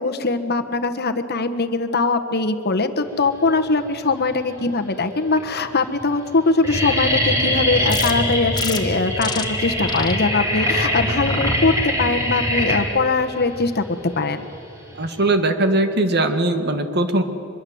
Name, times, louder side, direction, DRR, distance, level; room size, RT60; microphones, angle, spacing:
voice 1, 0.0-14.4, left 3 dB, 50° left, 8 dB, 1.4 m, -21 dB
sound 1, 4.0-4.6 5.3-5.4 5.7-6.0 6.3-15.2, equal, 15° right, 4.0 m, -23 dB
sound 2, 7.9-8.1 8.5-8.8 9.2-9.4 9.9-10.1 10.5-10.8 11.2-11.6 12.1-12.4, left 5 dB, 20° left, 1.6 m, -29 dB
voice 2, 15.0-17.2, right 2 dB, 50° right, 8 dB, 1.8 m, -20 dB
24.5 x 22.5 x 8.0 m, 2.8 s
head